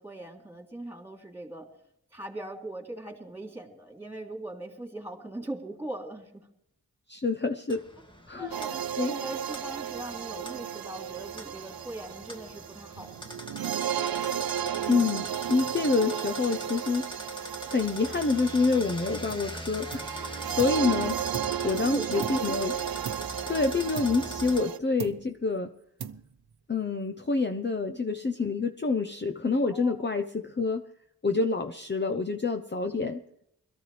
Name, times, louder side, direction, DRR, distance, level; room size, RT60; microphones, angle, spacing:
voice 1, 0.0-1.7 2.1-6.5 8.3-13.3 21.4-22.4 27.9-28.0 29.7-30.0 32.8-32.9, right 1 dB, 5° right, 2 dB, 3.3 m, -41 dB
voice 2, 7.1-7.8 8.3-8.5 9.0-9.2 14.9-17.1 17.7-21.1 21.6-22.7 23.5-25.7 26.7-30.9 31.2-33.2, left 4 dB, 30° left, 6 dB, 0.9 m, -27 dB
sound 1, 7.7-24.6, equal, 10° left, 1.9 m, -43 dB
sound 2, 8.5-24.8, right 10 dB, 70° right, 0.6 m, -34 dB
sound 3, 19.3-19.6 19.9-20.9 21.3-22.7 23.0-23.5 24.0-24.7 25.0-25.5 26.0-26.6, right 7 dB, 90° right, 0.9 m, -41 dB
22.0 x 14.0 x 3.4 m, 0.75 s
wide cardioid pair, 75°, 38 cm